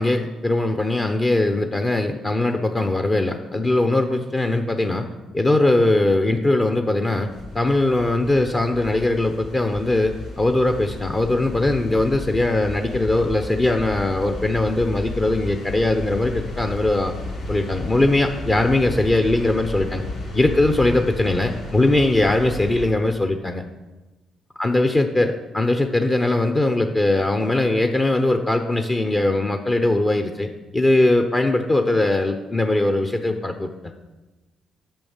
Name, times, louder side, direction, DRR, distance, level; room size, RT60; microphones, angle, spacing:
voice 1, 0.0-5.1 5.3-7.3 7.5-17.1 17.5-20.0 20.3-23.6 24.6-33.9, left 2 dB, 25° left, 6 dB, 0.8 m, -20 dB
sound 1, 7.3-22.9, left 2 dB, 80° left, 3.3 m, -34 dB
8.8 x 6.4 x 7.2 m, 1.1 s
cardioid pair, 90°, 0 cm